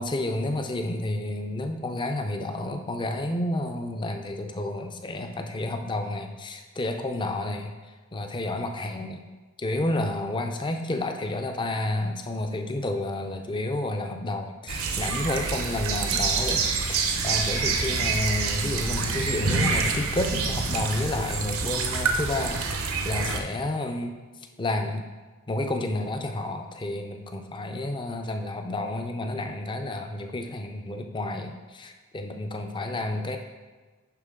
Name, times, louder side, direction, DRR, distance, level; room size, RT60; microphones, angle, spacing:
voice 1, 0.0-7.7 8.1-9.2 9.6-22.6 23.0-24.2 24.6-25.1 25.5-33.4, left 2 dB, 20° left, 5 dB, 0.5 m, -30 dB
sound 1, 14.7-23.4, right 4 dB, 70° right, 0.8 m, -27 dB
10.5 x 3.7 x 3.7 m, 1.3 s
head